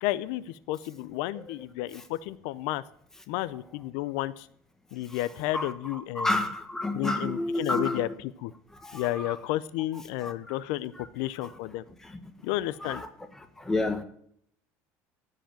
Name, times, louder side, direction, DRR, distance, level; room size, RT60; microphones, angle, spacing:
voice 1, 0.0-2.8 3.3-4.5 4.9-6.3 6.9-8.5 8.9-11.8 12.4-13.0, left 15 dB, 80° left, 0.6 m, -32 dB
voice 2, 6.1-8.1 8.8-9.3 10.2-10.6 11.0-11.1 11.4-11.5 12.0-12.2 12.8-13.1 13.6-14.0, left 2 dB, 5° left, 1.3 m, -30 dB
15.0 x 5.0 x 9.1 m
cardioid pair, 140°, 7 cm